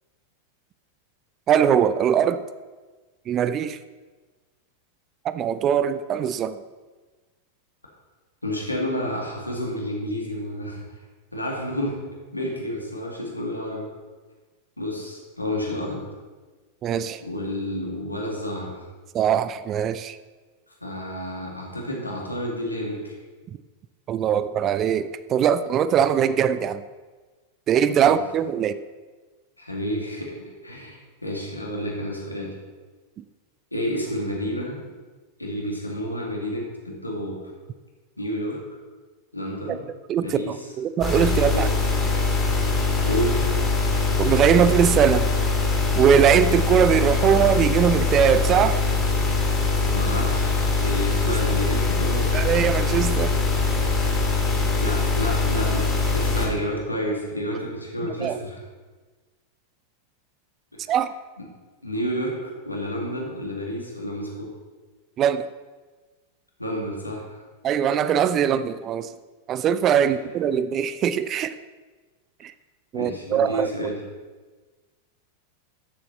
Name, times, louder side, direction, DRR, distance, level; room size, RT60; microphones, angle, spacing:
voice 1, 1.5-2.4 3.3-3.8 5.2-6.6 16.8-17.2 19.1-20.2 24.1-26.8 27.7-28.8 39.7-39.8 40.1-40.4 40.8-41.7 44.2-45.3 46.0-48.8 51.3-51.4 52.3-53.4 58.2-58.4 60.9-61.1 65.2-65.5 67.6-69.1 69.5-71.5 72.4-72.5 72.9-73.9, right 8 dB, 30° right, 14 dB, 0.4 m, -21 dB
voice 2, 8.4-10.8 11.3-12.0 12.3-13.9 14.8-16.0 17.2-18.8 20.8-23.2 28.0-28.2 29.6-32.6 33.7-34.8 35.4-37.5 38.2-38.6 39.3-39.8 40.2-40.7 41.5-41.7 43.0-43.4 49.9-52.4 54.8-58.6 60.8-60.9 61.4-61.5 61.8-64.5 66.6-67.4 72.9-74.0, equal, 85° left, -2 dB, 2.2 m, -30 dB
sound 1, 41.0-56.5, left 3 dB, 25° left, 2.8 m, -22 dB
13.0 x 7.0 x 4.1 m, 1.3 s
figure-of-eight pair, 90°, 0 cm